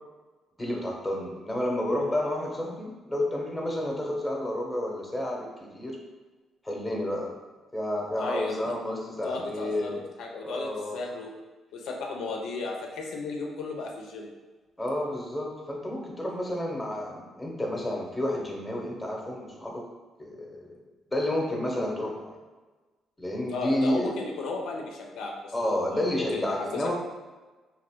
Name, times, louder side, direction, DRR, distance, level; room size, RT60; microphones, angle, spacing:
voice 1, 0.6-6.0 6.6-7.3 7.7-10.0 10.4-11.0 14.8-19.8 20.2-20.8 21.1-22.4 23.2-24.1 25.5-27.0, left 1 dB, 10° left, -1 dB, 0.8 m, -30 dB
voice 2, 8.2-8.7 9.2-11.3 11.7-14.3 23.5-25.5 25.9-26.5 26.7-26.9, left 3 dB, 85° left, 0 dB, 0.4 m, -34 dB
2.9 x 2.5 x 3.5 m, 1.3 s
cardioid pair, 90°, 0 cm